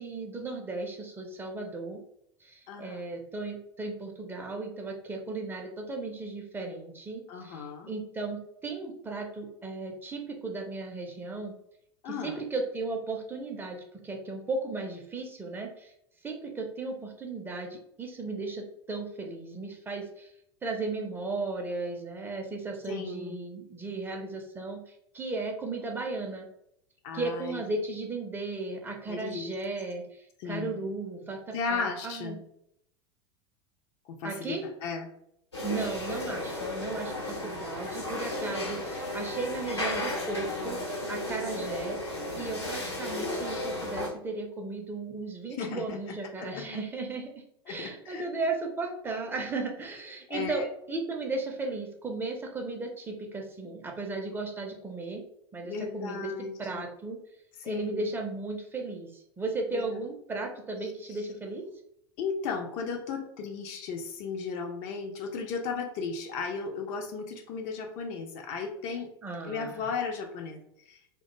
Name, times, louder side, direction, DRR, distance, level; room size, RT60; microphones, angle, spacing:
voice 1, 0.0-2.0 2.4-11.5 12.1-15.9 16.2-20.3 20.6-24.8 25.1-26.5 27.1-32.4 34.2-34.6 35.6-47.3 47.7-55.2 55.5-56.3 56.6-57.2 57.6-61.6 69.2-69.9, right 3 dB, 15° right, 2 dB, 0.5 m, -35 dB
voice 2, 2.7-3.0 7.3-7.9 12.0-12.4 22.9-23.4 27.0-27.6 29.1-29.5 30.4-30.9 31.5-32.4 34.1-35.1 45.6-46.6 47.7-48.2 50.3-50.6 55.6-56.8 57.6-58.1 59.7-60.0 62.2-69.1 69.4-70.6 70.9-71.0, left 5 dB, 45° left, 3 dB, 0.4 m, -35 dB
sound 1, 35.5-44.1, left 1 dB, 85° left, 0.9 m, -34 dB
2.3 x 2.2 x 2.9 m, 0.74 s
figure-of-eight pair, 80°, 14 cm